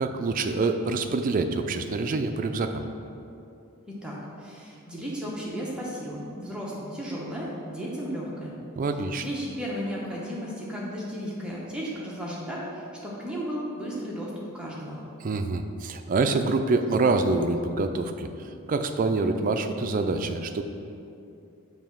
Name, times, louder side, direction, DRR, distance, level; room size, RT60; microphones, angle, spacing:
voice 1, 0.0-2.8 8.8-9.2 15.2-20.6, right 3 dB, 35° right, 7 dB, 0.3 m, -26 dB
voice 2, 3.9-8.6 9.2-15.0, equal, 5° right, -5 dB, 0.8 m, -34 dB
6.9 x 3.0 x 5.8 m, 2.6 s
head